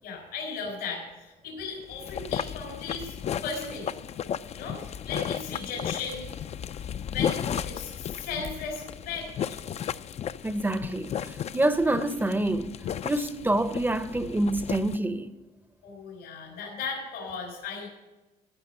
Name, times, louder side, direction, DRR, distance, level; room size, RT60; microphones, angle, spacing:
voice 1, 0.0-3.9 4.5-6.3 7.1-9.3 15.8-17.9, left 5 dB, 90° left, 3.8 m, -36 dB
sound 1, 1.8-15.0, left 9 dB, 40° left, 0.4 m, -34 dB
voice 2, 10.4-12.7 13.0-15.3, right 1 dB, 10° right, 0.6 m, -27 dB
14.5 x 5.5 x 7.5 m
cardioid pair, 110°, 17 cm